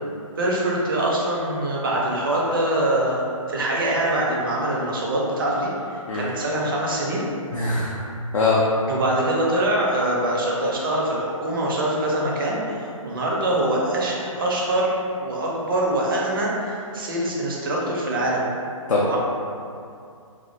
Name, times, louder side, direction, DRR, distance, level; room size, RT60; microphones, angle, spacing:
voice 1, 0.4-3.2 3.5-5.7 6.1-7.3 8.9-18.5 19.0-19.2, right 1 dB, 40° right, -3 dB, 0.5 m, -24 dB
voice 2, 7.5-8.1 8.3-8.6 18.9-19.2, left 3 dB, 60° left, -5 dB, 0.4 m, -22 dB
2.3 x 2.0 x 2.6 m, 2.4 s
figure-of-eight pair, 135°, 18 cm